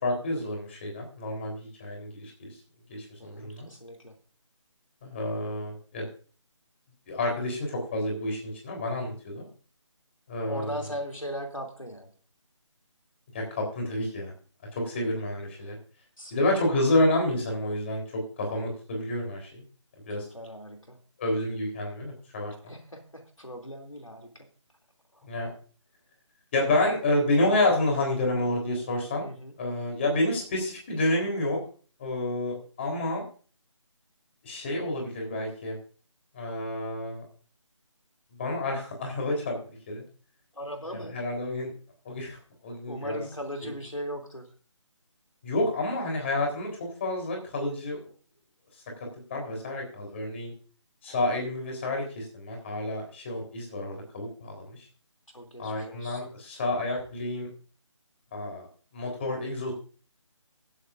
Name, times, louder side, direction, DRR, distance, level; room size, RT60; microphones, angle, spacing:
voice 1, 0.0-2.5 2.9-3.7 5.0-6.1 7.1-9.5 10.3-10.8 13.3-14.3 14.7-15.8 16.3-19.6 20.1-20.2 21.2-22.7 25.2-25.5 26.5-29.3 29.6-31.6 32.0-33.2 34.4-35.8 36.3-37.2 38.4-40.0 40.9-41.7 42.0-42.4 42.6-43.2 43.6-43.7 45.4-48.0 49.3-50.5 51.0-54.8 55.6-57.5 58.3-58.7 58.9-59.7, left 1 dB, 25° left, 1 dB, 4.0 m, -29 dB
voice 2, 3.2-4.2 10.4-12.1 15.6-15.7 16.2-16.6 20.3-21.0 22.7-24.5 25.1-25.3 29.2-29.5 40.5-41.2 42.9-44.5 51.1-51.4 55.3-56.2, equal, 85° left, 3 dB, 3.0 m, -39 dB
24.0 x 8.4 x 2.6 m, 0.40 s
figure-of-eight pair, 155°, 16 cm